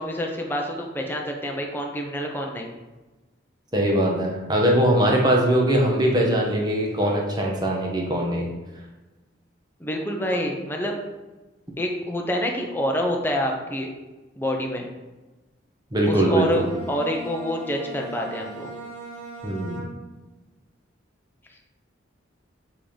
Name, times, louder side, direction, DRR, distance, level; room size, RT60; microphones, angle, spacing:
voice 1, 0.0-2.7 9.8-10.9 11.8-13.9 14.4-14.9 16.0-18.7, equal, 10° left, 1 dB, 0.7 m, -27 dB
voice 2, 3.7-8.5 15.9-16.5 19.4-19.8, right 1 dB, 20° right, -1 dB, 1.2 m, -21 dB
Bowed string instrument, 16.0-20.3, equal, 40° right, 1.4 m, -39 dB
7.5 x 3.7 x 5.1 m, 1.2 s
head